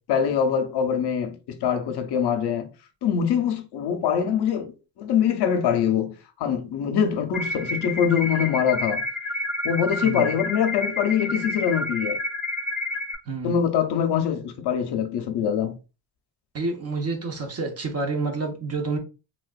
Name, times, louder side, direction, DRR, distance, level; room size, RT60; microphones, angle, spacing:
voice 1, 0.1-2.7 3.0-9.0 9.6-12.2 13.4-15.8, left 8 dB, 65° left, 0.6 m, -24 dB
sound 1, 7.3-13.1, left 2 dB, ahead, 0.8 m, -29 dB
voice 2, 16.5-19.0, right 3 dB, 35° right, 0.7 m, -28 dB
3.2 x 2.4 x 2.3 m
cardioid pair, 120°, 43 cm